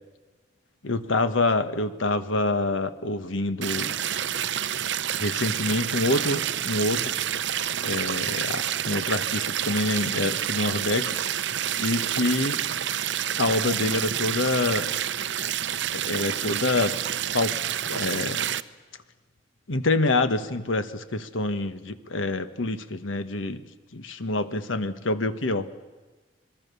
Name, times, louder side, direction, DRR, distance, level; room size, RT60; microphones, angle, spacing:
voice 1, 0.8-3.9 5.2-7.4 7.8-11.5 11.8-12.7 13.4-14.9 15.9-17.0 17.3-17.6 17.9-18.5 19.7-23.6 23.9-25.7, left 2 dB, 85° left, 11 dB, 1.4 m, -26 dB
sound 1, 3.6-18.6, right 10 dB, 70° right, 0.7 m, -28 dB
26.0 x 21.5 x 6.9 m, 1.2 s
head